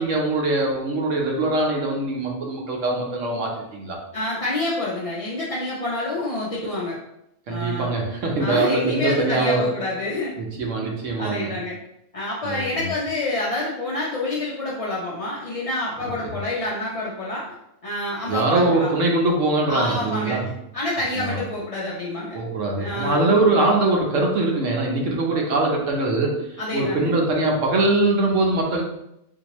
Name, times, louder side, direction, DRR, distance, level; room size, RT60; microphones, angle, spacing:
voice 1, 0.0-4.0 7.5-9.7 10.4-11.6 12.4-12.9 18.3-20.5 21.1-21.4 22.3-28.8, right 2 dB, 75° right, 0 dB, 1.1 m, -22 dB
voice 2, 4.1-7.0 7.5-7.9 8.4-10.3 11.2-11.8 12.1-17.5 17.8-18.9 19.7-20.4 20.7-22.4 22.8-23.3 26.6-27.2, left 2 dB, 55° left, -5 dB, 0.4 m, -27 dB
3.7 x 2.7 x 2.9 m, 0.80 s
omnidirectional pair, 1.3 m